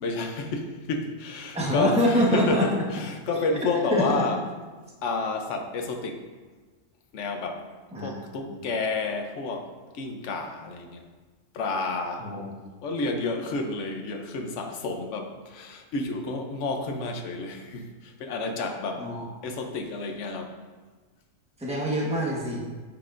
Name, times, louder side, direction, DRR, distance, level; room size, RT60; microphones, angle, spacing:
voice 1, 0.0-4.4 5.0-6.2 7.1-7.7 8.0-11.0 11.5-12.5 12.8-19.1 19.4-20.5, left 3 dB, 70° left, 4 dB, 1.1 m, -30 dB
voice 2, 1.5-2.7 3.9-4.2 7.9-8.1 8.5-8.6 12.2-12.5 19.0-19.2 21.6-22.6, equal, 5° right, -3 dB, 1.3 m, -25 dB
8.7 x 7.8 x 2.6 m, 1.4 s
omnidirectional pair, 1.3 m